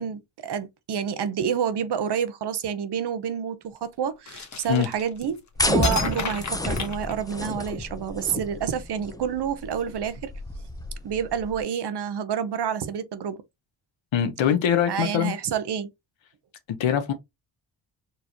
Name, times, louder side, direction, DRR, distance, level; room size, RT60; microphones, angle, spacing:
voice 1, 0.0-10.3 11.0-13.4 14.9-15.9, right 8 dB, 60° right, 0.9 m, -29 dB
sound 1, 4.3-5.4 5.8-7.7, left 5 dB, 40° left, 1.1 m, -32 dB
sound 2, 5.6-11.6, left 1 dB, 10° left, 0.7 m, -30 dB
voice 2, 14.1-15.3 16.8-17.1, left 9 dB, 75° left, 1.1 m, -22 dB
4.5 x 3.1 x 2.9 m
cardioid pair, 80°, 46 cm